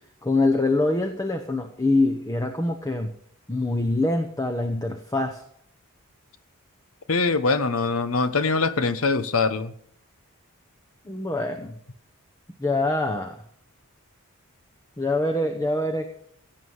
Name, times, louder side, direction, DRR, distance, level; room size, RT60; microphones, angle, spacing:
voice 1, 0.2-3.1 3.5-5.4 11.1-11.8 12.6-13.4 15.0-16.1, left 2 dB, 15° left, 5 dB, 0.9 m, -24 dB
voice 2, 7.1-9.7, left 4 dB, 65° left, 12 dB, 1.0 m, -23 dB
16.5 x 7.8 x 6.5 m, 0.67 s
head